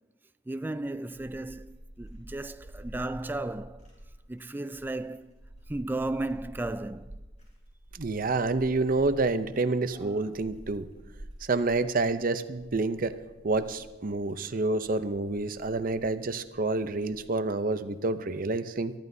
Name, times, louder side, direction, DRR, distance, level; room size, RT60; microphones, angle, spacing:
voice 1, 0.5-3.9 4.3-5.3 5.7-7.1 10.0-10.2, right 2 dB, 10° right, 0.3 m, -34 dB
sound 1, 0.8-17.5, right 1 dB, 40° left, 6.0 m, -49 dB
voice 2, 8.0-10.9 11.5-13.2 13.4-18.9, right 3 dB, 50° right, 0.7 m, -28 dB
23.0 x 13.5 x 2.7 m
head